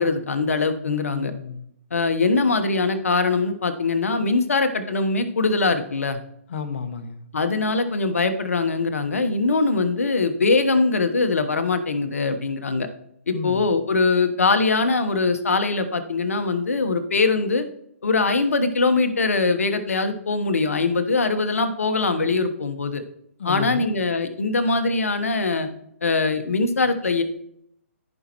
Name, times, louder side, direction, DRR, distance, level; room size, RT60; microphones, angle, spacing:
voice 1, 0.0-1.3 1.9-6.2 7.3-12.9 13.3-17.6 18.0-23.0 23.4-25.7 26.0-27.2, left 3 dB, 75° left, 9 dB, 1.1 m, -22 dB
voice 2, 0.9-1.7 6.5-7.2 13.3-13.7 23.4-23.9, left 5 dB, 60° left, 8 dB, 1.3 m, -31 dB
15.0 x 5.4 x 3.0 m, 0.73 s
figure-of-eight pair, 135°, 8 cm